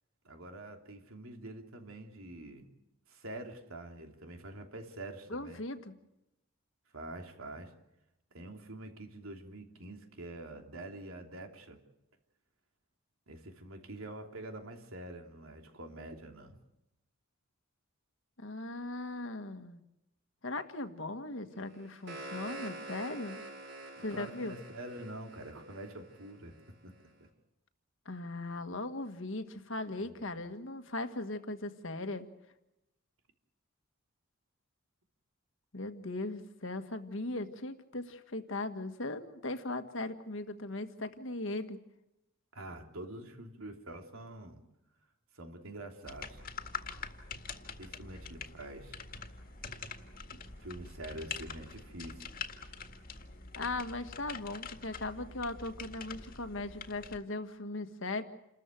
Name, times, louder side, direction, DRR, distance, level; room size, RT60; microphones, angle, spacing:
voice 1, 0.2-2.7 3.1-5.6 6.9-7.7 8.3-11.8 13.3-16.6 24.0-26.6 26.8-26.9 27.2-27.3 30.0-30.2 42.5-44.6 45.3-46.4 47.8-49.0 50.3-52.3, right 1 dB, 80° right, 4 dB, 3.1 m, -46 dB
voice 2, 5.3-5.9 18.4-19.8 20.4-23.4 24.0-24.6 28.0-32.3 35.7-41.8 53.5-58.2, left 2 dB, 65° left, 9 dB, 1.7 m, -38 dB
sound 1, 21.7-26.7, right 2 dB, 55° right, 6.2 m, -46 dB
sound 2, 46.0-57.2, left 5 dB, 45° left, 1.9 m, -45 dB
28.5 x 14.0 x 9.2 m, 0.91 s
head